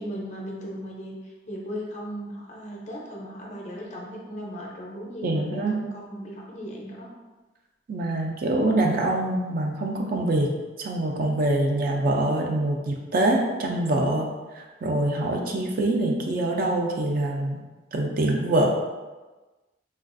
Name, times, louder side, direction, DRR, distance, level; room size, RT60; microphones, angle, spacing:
voice 1, 0.0-7.1, equal, 40° left, -2 dB, 0.5 m, -37 dB
voice 2, 5.2-5.8 7.9-10.5 10.8-14.3 14.5-17.6 17.9-18.7, right 1 dB, 50° right, 1 dB, 0.3 m, -24 dB
3.3 x 2.3 x 2.5 m, 1.2 s
head